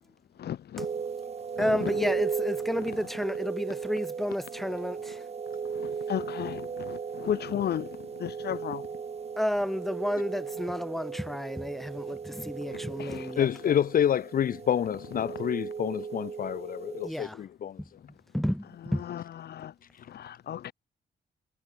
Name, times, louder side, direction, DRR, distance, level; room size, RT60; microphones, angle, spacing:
voice 1, 0.4-0.9 1.6-2.0 4.6-4.7 5.6-8.9 10.9-11.0 12.0-12.1 12.5-13.3 15.2-15.5 17.3-17.5 17.9-18.0 18.9-20.7, left 10 dB, 75° left, 1.7 m, -36 dB
sound 1, 0.8-17.1, right 6 dB, 40° right, 2.3 m, -36 dB
voice 2, 1.6-5.2 9.4-13.5 17.0-17.4 17.8-17.9 18.3-19.0, equal, ahead, 4.3 m, -31 dB
voice 3, 13.4-17.8, left 9 dB, 55° left, 1.1 m, -28 dB
wide cardioid pair, 140°, 17 cm